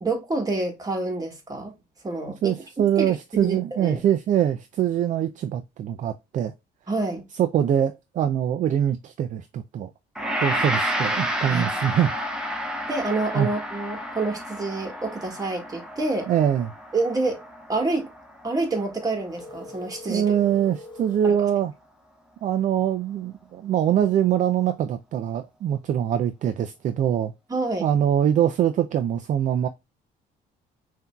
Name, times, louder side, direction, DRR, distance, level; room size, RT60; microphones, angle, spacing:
voice 1, 0.0-1.7 2.0-2.6 3.0-4.0 6.9-7.2 11.5-11.7 12.9-16.3 16.9-17.4 17.7-18.1 18.4-20.2 21.2-21.4 27.5-27.9, right 3 dB, 20° right, 1.6 m, -27 dB
voice 2, 2.4-6.5 7.4-9.9 10.4-12.1 13.3-13.5 16.3-16.7 20.1-21.7 22.4-27.3 27.8-29.7, right 10 dB, 50° right, 0.4 m, -23 dB
Gong, 10.1-19.3, equal, 5° right, 1.0 m, -30 dB
sound 1, 19.3-21.4, left 2 dB, 30° left, 0.7 m, -42 dB
5.6 x 2.7 x 2.2 m
cardioid pair, 110°, 17 cm